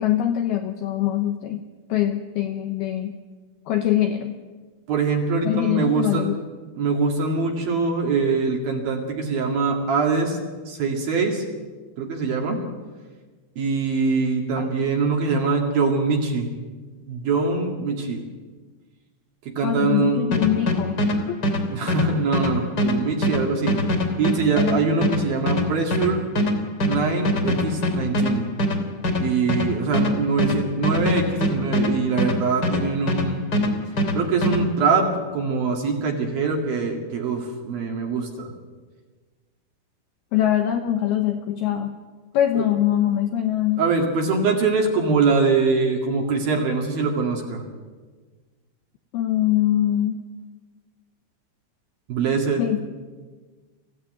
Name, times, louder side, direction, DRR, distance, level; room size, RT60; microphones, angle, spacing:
voice 1, 0.0-1.6 1.9-3.2 3.7-4.4 5.4-6.4 14.6-14.7 19.6-21.4 40.3-42.0 42.3-43.8 49.1-50.2 52.6-52.9, left 11 dB, 85° left, 6 dB, 2.2 m, -23 dB
voice 2, 4.9-6.3 6.8-10.4 10.7-11.4 12.0-12.6 13.6-16.5 17.1-18.3 19.4-20.2 21.7-23.8 24.2-26.2 26.8-28.5 29.2-33.4 34.1-38.5 42.6-42.7 43.8-47.6 52.1-52.6, right 4 dB, 55° right, 1 dB, 3.5 m, -23 dB
sound 1, 20.3-33.3 33.5-34.6, equal, 25° left, 2.6 m, -23 dB
23.5 x 15.5 x 9.2 m, 1.4 s
omnidirectional pair, 5.8 m